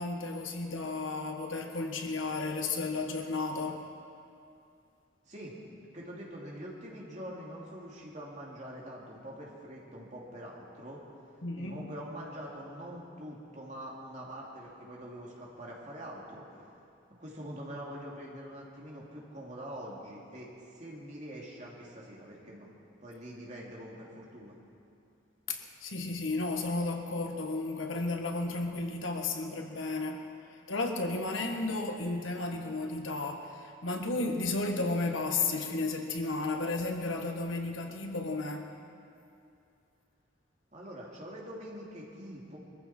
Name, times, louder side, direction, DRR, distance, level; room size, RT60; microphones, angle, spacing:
voice 1, 0.0-3.8 11.4-11.8 25.5-30.2 30.7-38.7, left 3 dB, 85° left, 3 dB, 1.5 m, -33 dB
voice 2, 5.3-5.6 5.9-11.0 11.6-16.6 17.2-22.7 23.0-24.6 40.7-42.6, equal, 35° right, -3 dB, 2.8 m, -44 dB
22.0 x 14.5 x 4.4 m, 2.6 s
head